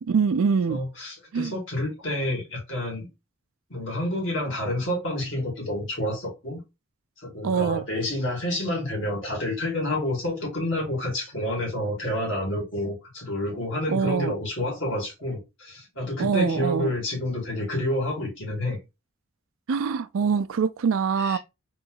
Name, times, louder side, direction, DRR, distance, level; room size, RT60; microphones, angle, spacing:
voice 1, 0.0-0.8 1.3-1.5 7.4-7.9 13.9-14.3 16.2-16.9 19.7-21.4, right 6 dB, 75° right, 0.4 m, -24 dB
voice 2, 0.7-3.1 3.7-6.6 7.2-18.8 21.2-21.4, left 1 dB, 60° left, 2.5 m, -29 dB
3.9 x 3.1 x 3.9 m
head